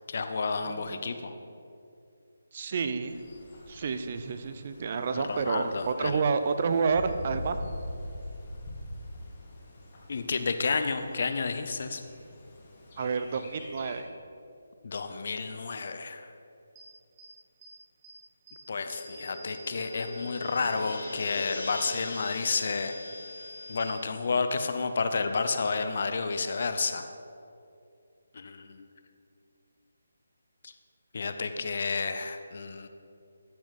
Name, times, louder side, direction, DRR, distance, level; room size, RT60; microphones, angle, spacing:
voice 1, 0.1-1.3 5.1-6.2 10.1-12.0 14.8-16.3 18.7-22.9 23.7-27.1 28.3-28.8 30.6-30.7 31.1-32.9, left 4 dB, 55° left, 8 dB, 0.7 m, -31 dB
voice 2, 0.7-1.2 2.5-3.1 3.7-7.6 13.0-14.1, right 5 dB, 40° right, 9 dB, 0.6 m, -29 dB
Bird, 3.0-14.0, left 1 dB, 35° left, 1.8 m, -44 dB
sound 1, 16.8-16.9 17.2-17.3 17.6-17.7 18.0-18.1 18.5-18.6 18.9-23.9, left 2 dB, 25° right, 1.9 m, -47 dB
sound 2, 18.8-25.3, left 2 dB, 70° left, 1.1 m, -41 dB
14.0 x 6.0 x 4.2 m, 2.5 s
figure-of-eight pair, 155°, 0 cm